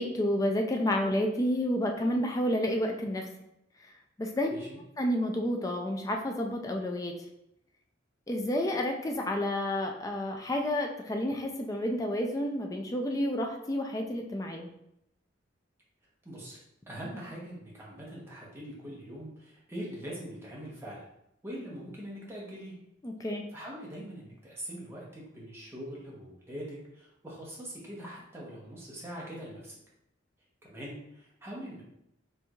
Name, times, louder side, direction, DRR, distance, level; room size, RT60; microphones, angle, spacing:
voice 1, 0.0-3.3 4.2-4.6 5.0-7.1 8.3-14.7 23.0-23.4, left 1 dB, 20° left, 2 dB, 0.3 m, -30 dB
voice 2, 16.2-16.6 16.9-21.1 21.4-22.8 23.5-29.8 30.6-31.8, equal, 15° right, -5 dB, 0.9 m, -42 dB
4.4 x 2.6 x 2.3 m, 0.81 s
head